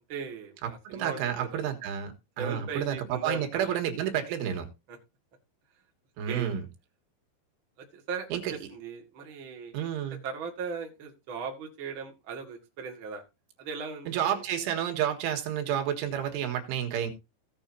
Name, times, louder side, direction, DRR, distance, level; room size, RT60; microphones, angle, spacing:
voice 1, 0.1-1.6 2.4-3.8 6.3-6.5 7.8-9.8 10.2-13.2 13.6-14.4, right 5 dB, 40° right, 1.9 m, -38 dB
voice 2, 0.6-4.7 6.2-6.7 8.3-8.6 9.7-10.2 14.1-17.1, right 9 dB, 90° right, 4.2 m, -30 dB
17.0 x 7.3 x 2.8 m
omnidirectional pair, 5.4 m